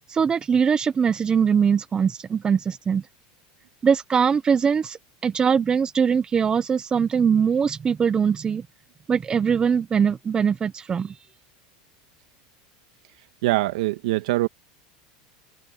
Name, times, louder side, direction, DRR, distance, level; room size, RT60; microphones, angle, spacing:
voice 1, 0.0-3.0 3.8-8.7 9.1-11.1, right 6 dB, 25° right, 0.9 m, -22 dB
voice 2, 13.4-14.5, right 18 dB, 80° right, 2.2 m, -23 dB
supercardioid pair, 120°, 4 cm